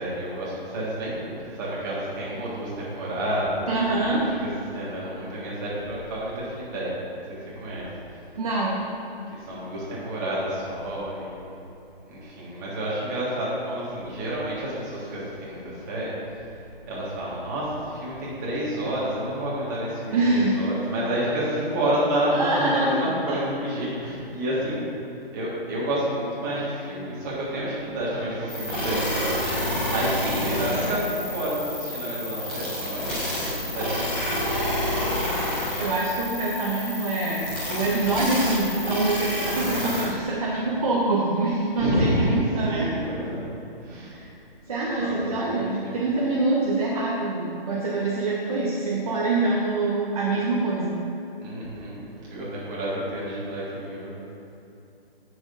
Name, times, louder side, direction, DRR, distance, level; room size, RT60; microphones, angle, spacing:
voice 1, 0.0-4.2 4.7-6.9 7.3-7.9 9.3-11.5 12.1-16.5 16.9-24.8 25.3-29.4 29.9-34.3 34.7-34.8 41.8-42.4 42.7-43.5 43.8-44.2 45.0-46.0 51.4-54.2, right 1 dB, 20° right, -7 dB, 1.7 m, -29 dB
voice 2, 3.7-4.2 8.3-8.8 20.1-20.7 22.3-22.9 23.3-23.4 35.8-42.9 44.1-44.3 44.7-51.0, right 2 dB, 35° right, -5 dB, 0.9 m, -25 dB
sound 1, 28.5-40.0, left 1 dB, 5° left, 0.7 m, -29 dB
15.0 x 6.2 x 2.6 m, 2.8 s
hypercardioid pair, 165°, 30 cm